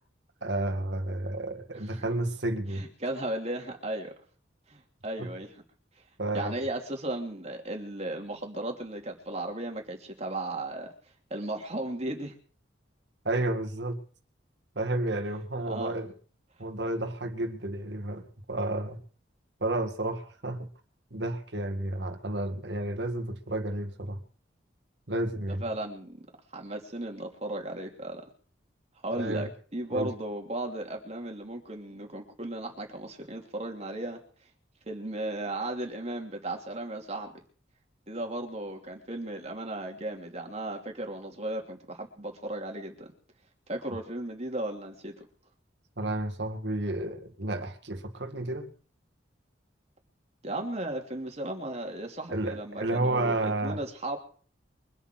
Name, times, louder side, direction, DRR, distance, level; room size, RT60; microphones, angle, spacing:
voice 1, 0.4-2.9 5.2-5.3 6.2-6.5 13.2-14.0 14.8-16.1 16.6-19.0 19.6-20.7 21.1-24.2 25.1-25.6 29.1-29.5 29.9-30.1 46.0-48.7 52.3-53.8, right 1 dB, 70° right, 2.2 m, -31 dB
voice 2, 2.7-4.1 4.7-5.5 6.3-10.9 11.3-12.3 15.7-15.9 25.6-26.2 26.5-28.2 29.0-34.2 34.9-37.3 38.1-43.1 43.7-45.1 50.4-54.2, right 1 dB, 35° right, 2.9 m, -35 dB
24.0 x 8.1 x 6.2 m
head